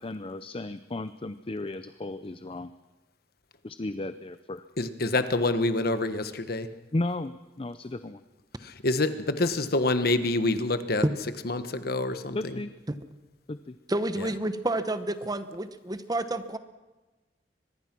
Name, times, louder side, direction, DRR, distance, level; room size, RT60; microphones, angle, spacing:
voice 1, 0.0-2.7 3.6-4.7 6.9-8.2 12.3-12.7 13.5-13.8, left 2 dB, 30° left, 12 dB, 0.6 m, -34 dB
voice 2, 4.8-6.7 8.6-11.0 11.4-12.6 14.2-14.3, left 2 dB, 60° left, 10 dB, 1.4 m, -27 dB
voice 3, 13.9-16.6, right 2 dB, 20° right, 11 dB, 1.0 m, -30 dB
24.0 x 20.5 x 6.1 m, 1.2 s
head